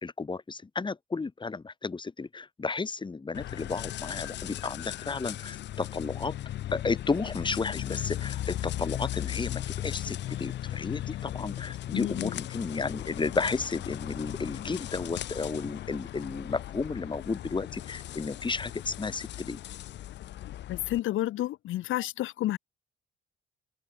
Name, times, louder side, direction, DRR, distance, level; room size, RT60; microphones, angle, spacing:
voice 1, 0.0-6.3 6.7-19.6, left 4 dB, 25° left, 1.6 m, -33 dB
sound 1, 3.3-21.0, left 13 dB, 65° left, 0.5 m, -37 dB
voice 2, 11.9-12.4 20.4-22.6, left 14 dB, 80° left, 1.1 m, -31 dB
cardioid pair, 90°, 20 cm